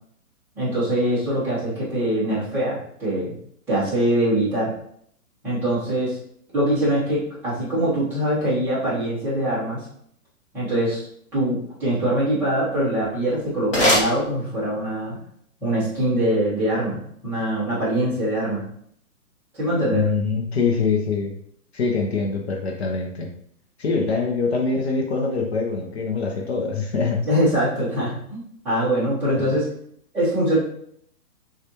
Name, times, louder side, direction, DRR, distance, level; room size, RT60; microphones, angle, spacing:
voice 1, 0.5-3.3 3.7-4.7 5.4-6.2 6.5-9.8 10.5-11.0 11.3-15.2 15.6-18.6 19.5-20.1 27.2-29.7 30.1-30.6, right 1 dB, 5° right, -13 dB, 0.9 m, -23 dB
sound 1, 13.0-14.9, equal, 20° left, 1.0 m, -24 dB
voice 2, 19.9-21.3 21.7-23.3 23.8-27.2 29.4-29.5, left 4 dB, 45° left, 1 dB, 0.7 m, -24 dB
6.6 x 2.5 x 2.8 m, 0.68 s
hypercardioid pair, 170°, 44 cm